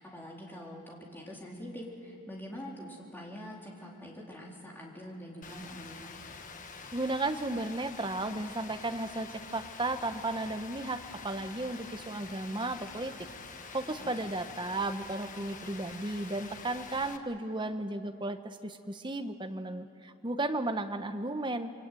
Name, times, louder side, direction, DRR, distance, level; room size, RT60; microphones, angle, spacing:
voice 1, 0.0-6.1 14.0-14.2, equal, 10° left, -2 dB, 3.8 m, -45 dB
Rain, 5.4-17.2, left 4 dB, 35° left, 1.3 m, -46 dB
voice 2, 6.9-13.1 13.7-21.7, right 2 dB, 20° right, 7 dB, 1.1 m, -34 dB
26.0 x 23.5 x 9.2 m, 3.0 s
head